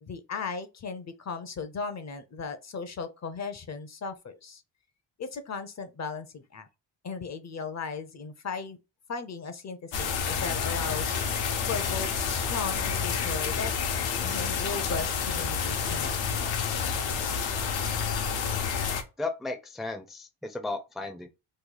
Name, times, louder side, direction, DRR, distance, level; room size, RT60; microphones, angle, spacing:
voice 1, 0.0-4.6 5.2-6.7 7.0-8.8 9.1-11.2 11.7-16.4, left 5 dB, 40° left, 0.6 m, -37 dB
sound 1, 9.9-19.0, left 6 dB, 80° left, 1.0 m, -29 dB
voice 2, 13.8-14.4 19.2-21.3, left 3 dB, ahead, 0.5 m, -36 dB
3.1 x 2.2 x 3.8 m
cardioid pair, 90°, 44 cm